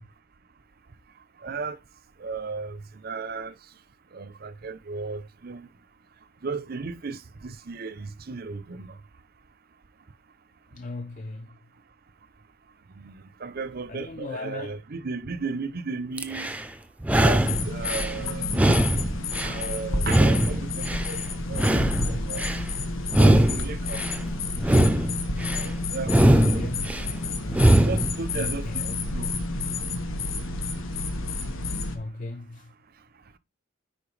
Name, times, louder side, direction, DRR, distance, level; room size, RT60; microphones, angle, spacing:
voice 1, 1.4-1.8 2.2-3.5 4.1-5.7 6.4-9.0 12.9-16.6 17.2-18.6 19.4-21.2 21.5-22.5 23.2-24.0 24.7-24.9 25.5-26.9 27.8-29.4, right 4 dB, 50° right, 0.6 m, -35 dB
voice 2, 10.7-11.5 13.9-14.8 26.2-26.9 28.3-29.0 31.9-32.7, left 2 dB, 40° left, 0.5 m, -36 dB
sound 1, 16.2-16.6 17.0-18.1 18.5-19.6 20.0-21.1 21.5-22.6 23.1-24.2 24.6-25.6 26.0-27.1 27.5-28.1, right 1 dB, 5° right, 0.5 m, -21 dB
sound 2, 17.4-32.0, left 2 dB, 80° left, 1.3 m, -30 dB
10.0 x 4.3 x 3.2 m
head